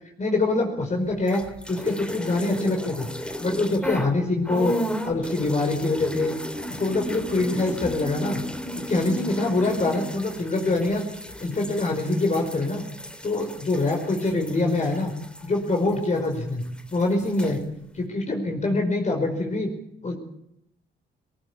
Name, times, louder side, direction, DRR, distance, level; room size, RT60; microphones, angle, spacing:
voice 1, 0.2-1.4 1.7-3.1 3.4-4.7 5.0-6.3 6.8-8.4 8.8-11.0 11.4-12.8 13.2-15.1 15.4-17.6 17.9-19.7 20.0-20.1, left 2 dB, 35° left, 2 dB, 5.2 m, -24 dB
sound 1, 1.2-4.1 4.4-16.3 16.6-17.6, equal, 5° left, 2.3 m, -34 dB
20.0 x 18.5 x 8.6 m, 0.77 s
cardioid pair, 90°, 20 cm